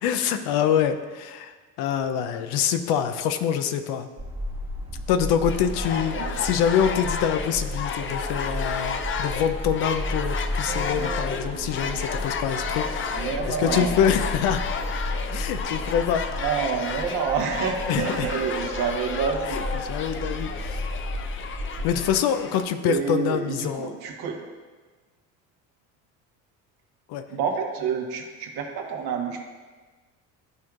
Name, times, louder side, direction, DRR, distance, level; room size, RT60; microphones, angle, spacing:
voice 1, 0.0-4.1 5.1-14.6 15.3-16.3 17.9-18.3 19.5-20.8 21.8-23.9 27.1-27.2, left 8 dB, 75° left, 9 dB, 0.7 m, -25 dB
sound 1, 4.2-22.2, left 1 dB, 15° right, 1.2 m, -33 dB
sound 2, 5.5-22.7, left 6 dB, 30° left, 0.5 m, -32 dB
voice 2, 6.2-6.5 13.2-14.0 16.4-19.6 22.8-24.4 27.3-29.4, right 6 dB, 65° right, 2 dB, 1.3 m, -28 dB
sound 3, 7.5-19.8, right 4 dB, 90° right, 1.4 m, -42 dB
12.0 x 4.5 x 2.5 m, 1.4 s
supercardioid pair, 80°, 39 cm